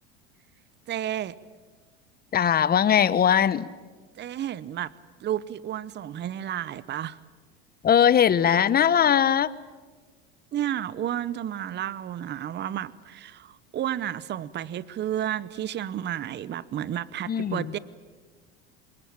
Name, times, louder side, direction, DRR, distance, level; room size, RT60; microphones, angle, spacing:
voice 1, 0.9-1.4 4.2-4.9 5.2-7.2 10.5-17.8, right 11 dB, 35° right, 18 dB, 0.9 m, -31 dB
voice 2, 2.3-3.7 7.8-9.5 17.3-17.7, left 8 dB, 30° left, 17 dB, 1.1 m, -20 dB
27.5 x 22.0 x 8.7 m, 1.4 s
supercardioid pair, 95°, 31 cm